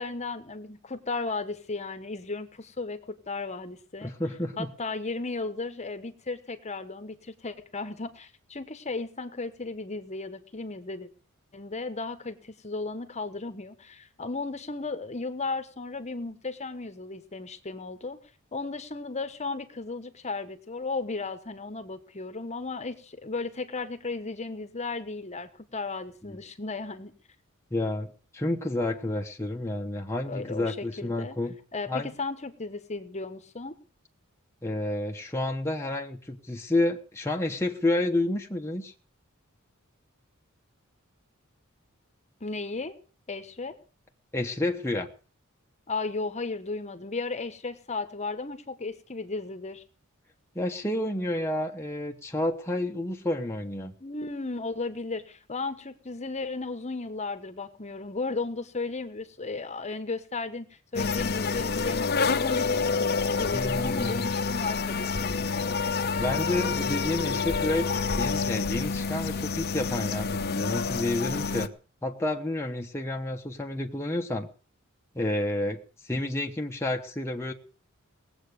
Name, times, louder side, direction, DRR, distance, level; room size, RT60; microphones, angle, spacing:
voice 1, 0.0-4.1 4.6-11.1 11.5-18.2 18.5-27.1 30.2-31.4 31.7-33.7 42.4-42.9 43.3-43.8 45.9-49.8 54.0-60.7 60.9-65.8, left 3 dB, 30° left, 10 dB, 1.2 m, -35 dB
voice 2, 4.0-4.7 27.7-31.5 31.9-32.1 34.6-38.9 44.3-45.1 50.5-53.9 63.5-64.3 66.2-67.9 68.1-71.7 72.0-74.5 75.1-77.5, left 1 dB, 10° left, 1 dB, 1.1 m, -30 dB
sound 1, 60.9-71.7, left 4 dB, 50° left, 0.9 m, -28 dB
19.0 x 8.0 x 6.6 m, 0.40 s
head